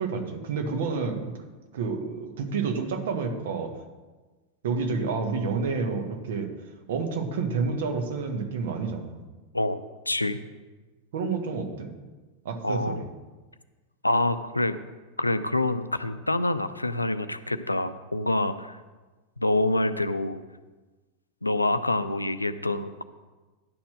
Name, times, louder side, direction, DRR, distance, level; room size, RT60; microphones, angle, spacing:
voice 1, 0.0-1.3 1.7-3.7 4.6-6.5 6.9-9.2 11.1-11.9 12.4-13.1, right 4 dB, 55° right, 5 dB, 1.3 m, -29 dB
voice 2, 9.5-10.4 12.6-13.0 14.0-14.8 15.2-18.8 19.4-20.4 21.4-23.0, left 2 dB, 85° left, 12 dB, 0.4 m, -26 dB
10.5 x 4.4 x 7.7 m, 1.3 s
figure-of-eight pair, 90°, 0 cm